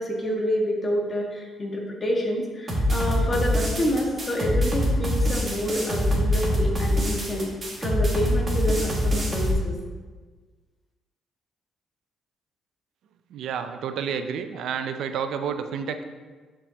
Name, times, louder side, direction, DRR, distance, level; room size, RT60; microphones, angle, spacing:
voice 1, 0.0-7.5 7.8-9.7, equal, 30° left, -1 dB, 1.6 m, -28 dB
sound 1, 2.7-9.5, left 1 dB, 35° right, 1.8 m, -24 dB
voice 2, 13.3-16.0, right 7 dB, 75° right, 8 dB, 0.4 m, -30 dB
10.0 x 4.5 x 2.9 m, 1.4 s
cardioid pair, 90°, 0 cm